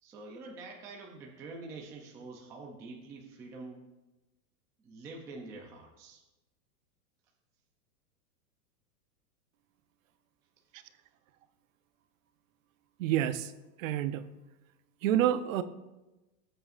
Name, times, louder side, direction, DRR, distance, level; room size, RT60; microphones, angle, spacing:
voice 1, 0.0-3.8 4.8-6.2, right 3 dB, 5° right, 0 dB, 0.4 m, -46 dB
voice 2, 13.0-13.5 13.8-14.2 15.0-15.6, right 11 dB, 55° right, 11 dB, 0.8 m, -28 dB
18.5 x 7.9 x 2.5 m, 1.1 s
supercardioid pair, 145°, 49 cm